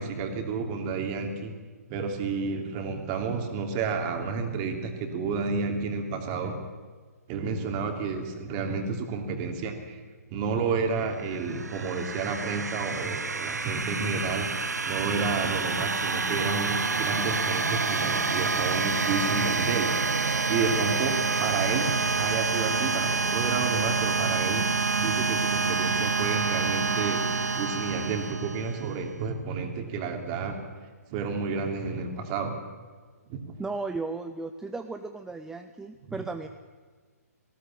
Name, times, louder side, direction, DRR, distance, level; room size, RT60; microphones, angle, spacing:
voice 1, 0.0-1.5 1.9-6.6 7.3-10.0 10.3-19.9 20.5-24.7 24.9-30.6 31.1-32.6 33.3-33.4 36.0-36.1, right 4 dB, 30° right, 4 dB, 3.0 m, -31 dB
sound 1, 11.3-28.9, right 4 dB, 80° right, 1.3 m, -28 dB
voice 2, 33.6-36.5, right 3 dB, 5° right, 7 dB, 0.6 m, -35 dB
19.0 x 16.5 x 8.7 m, 1.5 s
figure-of-eight pair, 135°, 9 cm